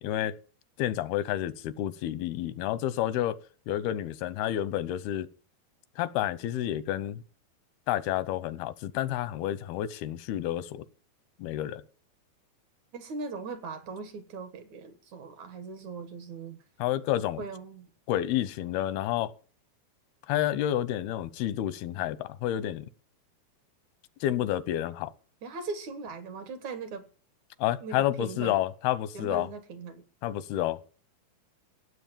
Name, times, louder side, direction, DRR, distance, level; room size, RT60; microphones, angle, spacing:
voice 1, 0.0-0.4 0.8-3.4 3.7-5.3 6.0-7.2 7.9-10.8 11.4-11.8 16.8-17.4 18.1-19.3 20.3-22.9 24.2-25.1 27.6-29.5 30.2-30.8, left 12 dB, 90° left, 2.8 m, -29 dB
voice 2, 12.9-16.6 17.4-17.9 25.4-27.1 27.8-28.6 29.1-30.0, right 4 dB, 60° right, 2.5 m, -39 dB
16.0 x 7.9 x 7.3 m
omnidirectional pair, 4.3 m